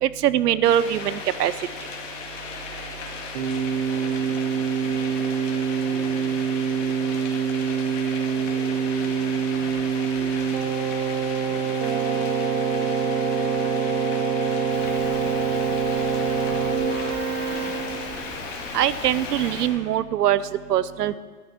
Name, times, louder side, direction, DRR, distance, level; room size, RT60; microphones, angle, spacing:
voice 1, 0.0-1.5 18.7-20.4 20.7-21.2, right 11 dB, 80° right, 17 dB, 0.7 m, -22 dB
sound 1, 0.6-19.7, left 4 dB, 50° left, 2.3 m, -36 dB
Keyboard (musical), 3.3-18.4, right 6 dB, 35° right, 0.9 m, -25 dB
voice 2, 3.6-7.2 8.0-10.7 11.2-17.9 21.0-21.2, equal, ahead, -11 dB, 3.0 m, -46 dB
Rain, 14.7-19.7, left 3 dB, 20° left, 2.1 m, -40 dB
12.5 x 10.0 x 4.6 m, 1.5 s
hypercardioid pair, 145°, 47 cm